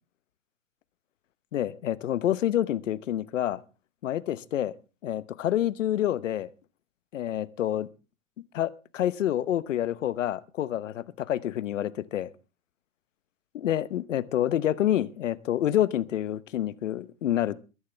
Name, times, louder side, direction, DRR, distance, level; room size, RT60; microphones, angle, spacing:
voice 1, 1.5-3.6 4.0-4.7 5.0-6.5 7.1-7.9 8.5-12.3 13.5-17.6, left 11 dB, 65° left, 1.1 m, -28 dB
22.5 x 11.0 x 3.4 m
hypercardioid pair, 150°, 40 cm